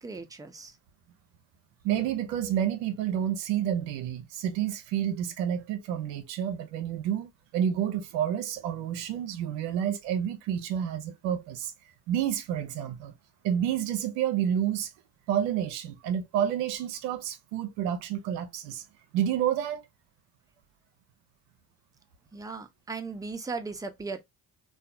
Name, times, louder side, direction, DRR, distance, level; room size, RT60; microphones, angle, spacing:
voice 1, 0.0-0.7 22.3-24.2, right 4 dB, 10° right, 0.5 m, -37 dB
voice 2, 1.8-11.7 12.1-13.1 13.4-14.9 15.3-18.8 19.1-19.8, right 10 dB, 85° right, 0.5 m, -29 dB
2.6 x 2.3 x 2.3 m
hypercardioid pair, 45°, 43 cm